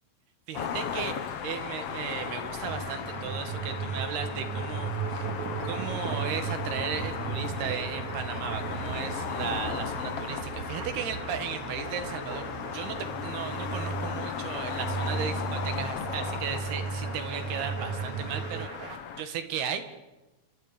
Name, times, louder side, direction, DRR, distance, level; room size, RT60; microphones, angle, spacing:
sound 1, 0.5-19.2, left 8 dB, 65° left, 1.6 m, -36 dB
voice 1, 0.5-1.2 1.4-5.2 5.6-19.9, right 7 dB, 85° right, 8 dB, 3.9 m, -36 dB
sound 2, 2.1-19.0, right 4 dB, 40° right, 3.1 m, -44 dB
sound 3, 2.7-18.7, right 6 dB, 70° right, 1.8 m, -36 dB
30.0 x 25.5 x 5.3 m, 1.1 s
omnidirectional pair, 4.4 m